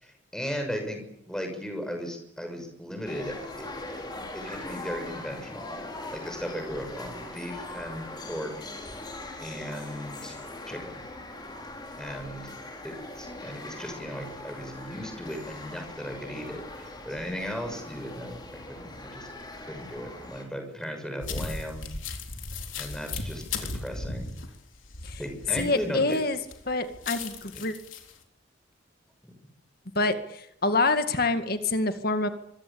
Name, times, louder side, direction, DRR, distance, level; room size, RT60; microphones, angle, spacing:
voice 1, 0.0-1.0 1.3-5.7 6.1-8.5 9.4-10.4 10.7-10.9 12.0-12.5 12.8-18.4 18.7-19.3 19.6-21.8 22.8-23.4 23.7-24.3 25.2-26.2 29.2-29.3, equal, 5° left, 5 dB, 6.3 m, -36 dB
sound 1, 3.0-20.4, left 2 dB, 20° left, 5.1 m, -41 dB
sound 2, 21.2-26.2 26.5-28.1, left 3 dB, 85° left, 3.7 m, -36 dB
voice 2, 25.6-26.4 26.7-27.7 30.0-32.3, left 2 dB, 50° left, 8 dB, 2.1 m, -26 dB
26.0 x 22.5 x 8.8 m, 0.79 s
head